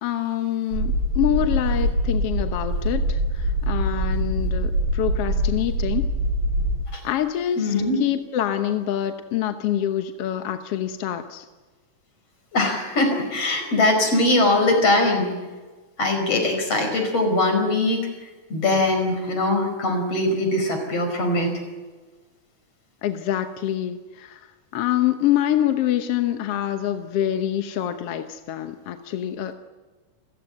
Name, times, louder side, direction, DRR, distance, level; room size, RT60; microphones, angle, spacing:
voice 1, 0.0-6.1 7.0-11.5 23.0-24.5 24.7-29.5, left 11 dB, 65° left, 8 dB, 1.7 m, -26 dB
sound 1, 0.7-6.8, right 1 dB, 70° right, 5.4 m, -24 dB
voice 2, 7.6-8.0 12.5-15.3 16.0-18.0 18.5-21.5, left 2 dB, 45° left, 5 dB, 6.1 m, -21 dB
29.5 x 15.0 x 9.1 m, 1.3 s
omnidirectional pair, 3.7 m